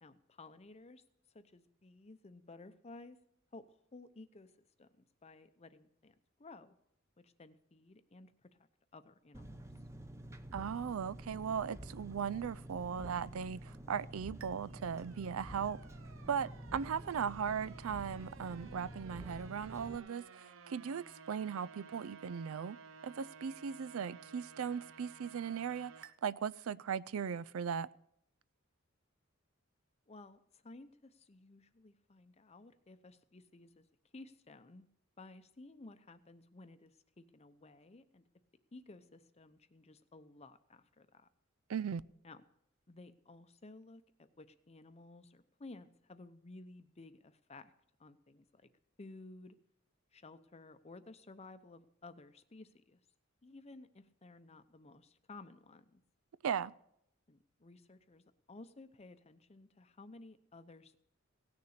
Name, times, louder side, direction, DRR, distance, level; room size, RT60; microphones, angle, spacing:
voice 1, 0.0-1.0 1.3-3.2 3.5-4.5 4.8-6.8 7.2-9.7 30.1-33.9 34.1-34.9 35.2-38.2 38.7-41.3 42.2-42.4 42.9-47.7 48.0-48.7 49.0-49.6 50.1-53.0 53.4-56.0 57.3-61.0, left 2 dB, 30° left, 0.7 m, -55 dB
Engine, 9.3-20.0, right 1 dB, 15° right, 0.7 m, -49 dB
voice 2, 10.5-15.8 16.3-22.8 23.0-27.9 41.7-42.0 56.4-56.7, right 7 dB, 85° right, 0.4 m, -38 dB
sound 1, 14.4-26.1, right 5 dB, 70° right, 0.8 m, -56 dB
17.0 x 6.9 x 6.5 m
head